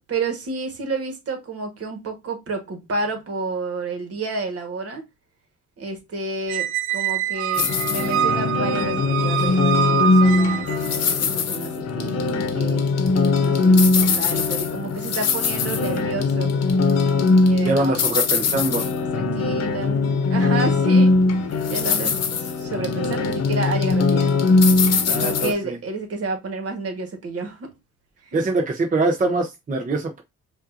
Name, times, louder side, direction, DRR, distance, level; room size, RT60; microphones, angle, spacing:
voice 1, 0.1-5.1 5.8-16.5 17.4-17.9 19.1-24.7 25.0-27.7 28.2-28.5, right 3 dB, 50° right, 1.6 m, -30 dB
Squeak, 6.5-11.0, right 9 dB, 85° right, 0.6 m, -25 dB
sound 1, 7.6-25.5, left 3 dB, 55° left, 0.9 m, -20 dB
voice 2, 17.6-18.9 25.1-25.8 28.3-30.2, right 2 dB, 25° right, 0.8 m, -23 dB
5.1 x 2.6 x 2.7 m
cardioid pair, 90°, 30 cm